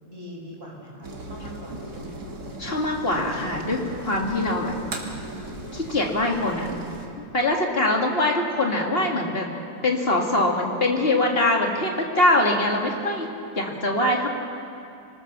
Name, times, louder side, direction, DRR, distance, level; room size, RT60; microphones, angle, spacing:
voice 1, 0.0-2.2, equal, 25° right, -3 dB, 5.6 m, -42 dB
sound 1, 1.0-7.1, right 1 dB, 50° right, 2.6 m, -37 dB
voice 2, 2.6-4.8 5.7-6.7 7.3-9.5 9.8-13.3 13.6-14.3, left 1 dB, 30° left, 0 dB, 2.3 m, -23 dB
25.0 x 19.0 x 6.8 m, 2.6 s
omnidirectional pair, 2.2 m